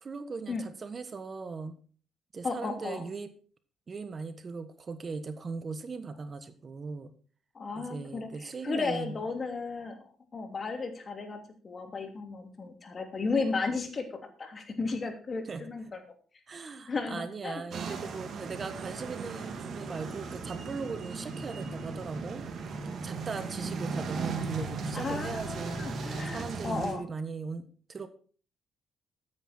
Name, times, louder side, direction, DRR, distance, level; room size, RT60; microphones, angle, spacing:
voice 1, 0.0-1.8 2.3-3.3 3.9-7.1 7.7-9.2 15.4-15.6 16.5-22.7 23.0-27.6 27.9-28.1, right 4 dB, 40° right, 10 dB, 1.4 m, -39 dB
voice 2, 2.4-3.0 7.5-16.0 16.9-17.6 24.9-27.0, left 4 dB, 40° left, 5 dB, 3.0 m, -34 dB
sound 1, 17.7-26.9, right 4 dB, 60° right, 3.0 m, -37 dB
13.5 x 9.9 x 4.5 m, 0.41 s
cardioid pair, 90°, 0 cm